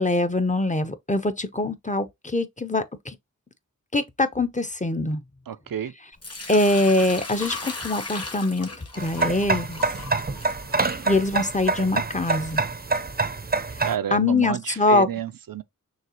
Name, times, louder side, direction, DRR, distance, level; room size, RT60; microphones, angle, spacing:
voice 1, 0.0-3.2 3.9-5.2 6.5-8.7 9.0-9.8 11.1-12.6 13.7-15.1, left 2 dB, 20° left, 0.6 m, -23 dB
voice 2, 5.5-5.9 13.8-15.6, right 9 dB, 85° right, 0.5 m, -30 dB
Sink (filling or washing) / Liquid, 6.2-13.1, left 3 dB, 45° left, 1.2 m, -38 dB
sound 1, 9.0-13.9, right 4 dB, 30° right, 0.5 m, -26 dB
6.4 x 2.4 x 2.8 m
wide cardioid pair, 55°, 33 cm